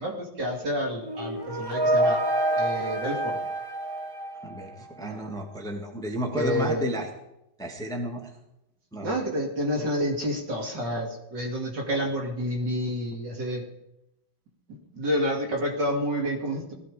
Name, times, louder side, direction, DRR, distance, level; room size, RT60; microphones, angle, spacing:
voice 1, 0.0-2.2 2.6-3.4 5.0-5.2 6.3-6.8 9.0-13.6 14.9-16.7, equal, 55° right, 1 dB, 3.2 m, -29 dB
sound 1, 1.0-4.9, right 1 dB, 15° right, 1.0 m, -27 dB
voice 2, 4.4-7.1 7.6-8.3 8.9-9.2, right 1 dB, ahead, 1 dB, 1.8 m, -32 dB
19.5 x 14.5 x 5.0 m, 0.86 s
omnidirectional pair, 2.2 m